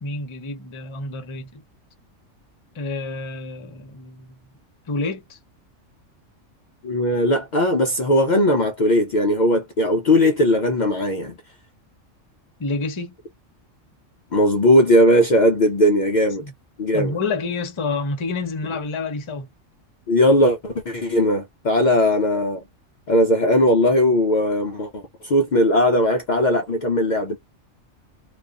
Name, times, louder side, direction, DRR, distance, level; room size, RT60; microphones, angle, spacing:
voice 1, 0.0-1.6 2.7-4.3 4.9-5.4 12.6-13.1 16.4-16.5 16.9-19.5, left 3 dB, 35° left, 0.5 m, -28 dB
voice 2, 6.8-11.4 14.3-16.5 16.8-17.2 20.1-22.6 23.1-27.4, left 1 dB, 90° left, 0.4 m, -18 dB
2.4 x 2.3 x 2.3 m
omnidirectional pair, 1.3 m